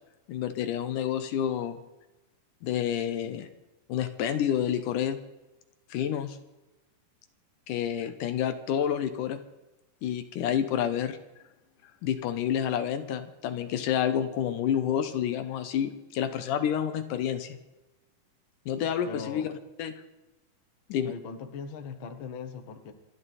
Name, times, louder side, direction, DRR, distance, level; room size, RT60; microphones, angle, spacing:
voice 1, 0.3-1.8 2.6-3.5 3.9-5.2 5.9-6.4 7.7-9.4 10.0-11.2 12.0-17.6 18.7-19.5 19.8-19.9 20.9-21.2, left 9 dB, 75° left, 9 dB, 2.4 m, -29 dB
voice 2, 18.7-19.5 21.1-22.9, left 5 dB, 50° left, 6 dB, 1.7 m, -40 dB
27.5 x 11.0 x 4.2 m, 1.0 s
omnidirectional pair, 3.8 m